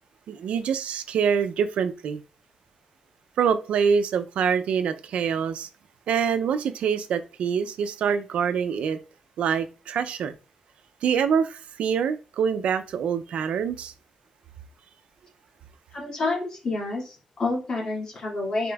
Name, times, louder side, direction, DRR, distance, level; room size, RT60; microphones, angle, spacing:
voice 1, 0.3-2.2 3.4-5.7 6.1-9.0 9.4-10.3 11.0-13.9, right 7 dB, 90° right, 0.4 m, -25 dB
voice 2, 15.9-18.7, left 2 dB, 40° left, 2.0 m, -29 dB
5.1 x 4.2 x 2.3 m
wide cardioid pair, 135°, 2 cm